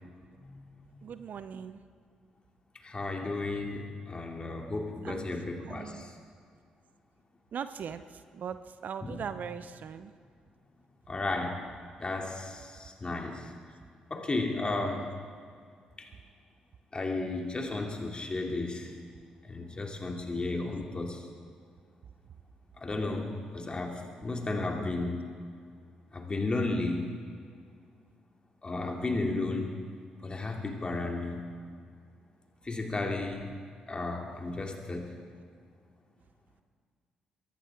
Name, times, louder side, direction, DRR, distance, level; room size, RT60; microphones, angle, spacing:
voice 1, 1.0-1.8 5.0-5.2 5.7-6.1 7.5-8.0 8.3-10.1, right 7 dB, 55° right, 12 dB, 0.6 m, -39 dB
voice 2, 2.8-6.1 9.0-9.2 11.1-11.6 12.0-13.5 14.1-15.1 16.0-16.1 16.9-18.9 19.4-21.3 22.8-25.3 26.1-27.1 28.6-29.7 30.2-31.5 32.6-33.6 33.9-35.1, left 2 dB, 30° left, 1 dB, 2.7 m, -33 dB
23.0 x 14.5 x 3.7 m, 2.1 s
hypercardioid pair, 40°, 3 cm